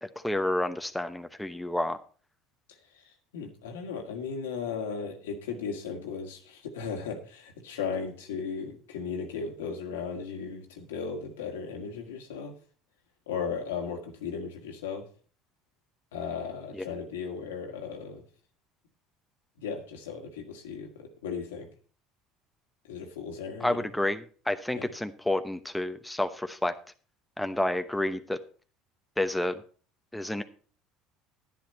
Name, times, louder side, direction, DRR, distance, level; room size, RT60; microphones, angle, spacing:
voice 1, 0.0-2.0 16.7-16.9 23.6-26.8 27.4-28.4 29.2-29.6 30.1-30.4, left 1 dB, 5° left, 8 dB, 0.9 m, -30 dB
voice 2, 2.9-12.5 13.3-15.1 16.1-18.2 19.6-21.7 22.9-23.9 24.7-24.9, left 6 dB, 85° left, 3 dB, 1.9 m, -36 dB
10.5 x 10.5 x 4.3 m, 0.40 s
hypercardioid pair, 75°, 0 cm